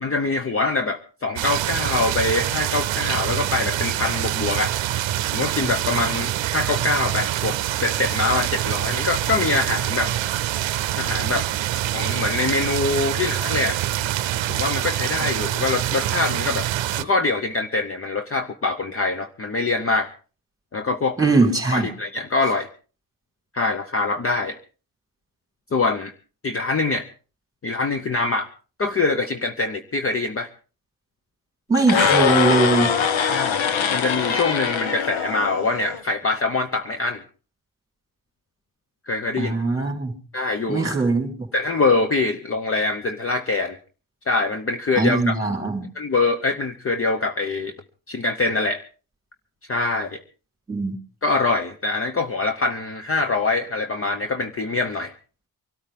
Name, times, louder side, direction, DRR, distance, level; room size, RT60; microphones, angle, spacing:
voice 1, 0.0-4.8 5.3-10.1 11.0-11.5 11.9-13.8 14.5-20.1 20.7-21.2 21.7-22.7 23.5-24.6 25.7-26.1 26.4-27.1 27.6-28.5 28.8-30.5 33.2-33.6 33.9-37.2 39.1-39.5 40.3-40.9 41.5-43.8 44.3-45.4 45.9-47.7 48.1-48.8 49.7-50.2 51.2-55.1, left 3 dB, 30° left, 8 dB, 0.9 m, -24 dB
sound 1, 1.4-17.0, right 13 dB, 80° right, 0.7 m, -25 dB
voice 2, 21.2-21.9 31.7-32.9 39.4-40.1 40.7-41.3 45.0-45.9 50.7-51.0, right 3 dB, 10° right, 4 dB, 3.8 m, -21 dB
sound 2, 31.8-36.0, left 7 dB, 80° left, 1.5 m, -22 dB
24.0 x 13.5 x 3.7 m, 0.36 s
wide cardioid pair, 145°, 45 cm